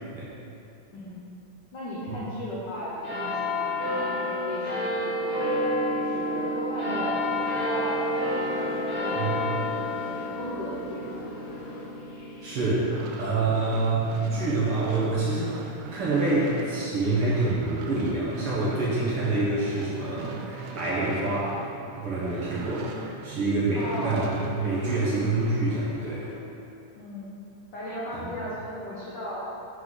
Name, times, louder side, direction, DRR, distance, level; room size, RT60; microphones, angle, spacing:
voice 1, 0.9-1.2 1.7-2.9 3.2-5.4 6.0-8.0 8.4-9.4 9.7-11.1 23.7-24.2 27.0-27.4 27.7-29.5, equal, 80° left, -8 dB, 0.9 m, -36 dB
sound 1, 3.0-15.9 16.6-16.7, left 1 dB, 25° left, 1.3 m, -30 dB
sound 2, 7.2-13.7 14.2-26.3, left 1 dB, 60° left, 1.7 m, -47 dB
voice 2, 12.4-21.6 22.0-26.3 28.2-28.3, right 2 dB, 60° right, -8 dB, 1.5 m, -27 dB
sound 3, 12.8-23.4 23.7-25.7, right 5 dB, 90° right, 2.1 m, -41 dB
7.7 x 5.6 x 3.9 m, 2.7 s
omnidirectional pair, 3.6 m